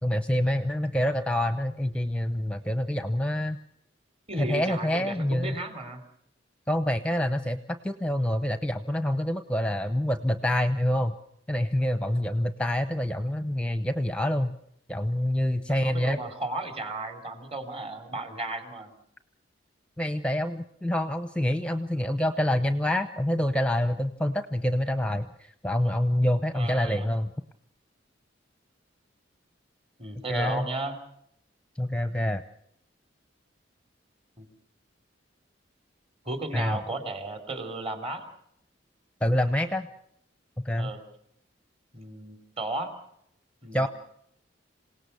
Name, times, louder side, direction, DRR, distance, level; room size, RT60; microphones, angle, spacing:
voice 1, 0.0-3.6 4.4-5.6 6.7-7.6 7.8-11.1 11.5-14.5 14.9-16.2 20.0-27.3 30.3-30.7 31.8-32.4 36.5-36.8 39.2-39.9 40.6-40.9 43.7-43.9, left 1 dB, 5° left, 10 dB, 0.8 m, -26 dB
voice 2, 4.3-6.0 15.7-18.9 26.6-27.1 30.0-30.9 34.4-34.5 36.2-38.2 40.8-41.0 41.9-42.9 43.6-43.9, right 2 dB, 35° right, 7 dB, 3.7 m, -34 dB
27.5 x 18.0 x 7.0 m, 0.73 s
head